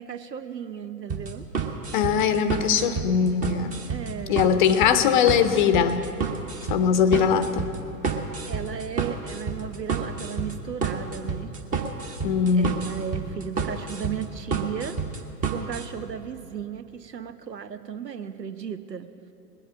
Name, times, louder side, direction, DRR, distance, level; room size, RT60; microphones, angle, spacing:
voice 1, 0.0-1.5 3.9-4.5 8.5-11.5 12.5-15.0 15.5-19.1, right 8 dB, 90° right, 12 dB, 0.9 m, -35 dB
sound 1, 1.1-15.9, right 5 dB, 15° right, 0.8 m, -30 dB
voice 2, 1.9-3.8 4.3-6.0 6.7-7.7 12.2-12.9, left 7 dB, 30° left, 11 dB, 0.6 m, -21 dB
19.5 x 7.9 x 7.3 m, 2.8 s
figure-of-eight pair, 105°, 48 cm